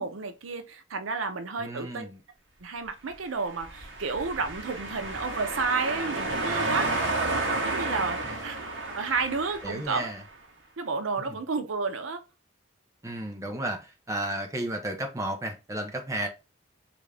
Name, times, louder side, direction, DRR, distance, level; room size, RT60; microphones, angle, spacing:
voice 1, 0.0-2.1 2.6-6.8 7.6-10.1 10.8-12.2, right 4 dB, 90° right, 0.6 m, -31 dB
voice 2, 1.6-2.2 6.4-7.1 8.2-8.4 9.6-10.2 11.3-11.4 13.0-16.3, right 1 dB, 15° right, 0.5 m, -33 dB
sound 1, 3.5-10.2, right 2 dB, 70° right, 0.9 m, -31 dB
3.4 x 2.5 x 3.2 m
head